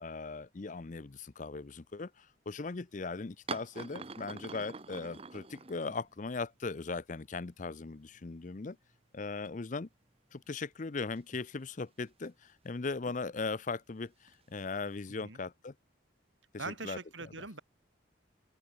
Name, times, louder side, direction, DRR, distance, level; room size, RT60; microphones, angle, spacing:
voice 1, 0.0-8.8 9.1-9.9 10.3-15.7 16.5-17.0, left 4 dB, 40° left, 0.6 m, -39 dB
sound 1, 3.5-6.3 6.6-6.7 7.7-7.8 8.1-8.9 9.4-9.5 11.1-12.3 12.9-13.2 14.3-14.9, right 4 dB, 30° right, 0.9 m, -46 dB
voice 2, 16.6-17.6, right 3 dB, 75° right, 3.8 m, -42 dB
open air
head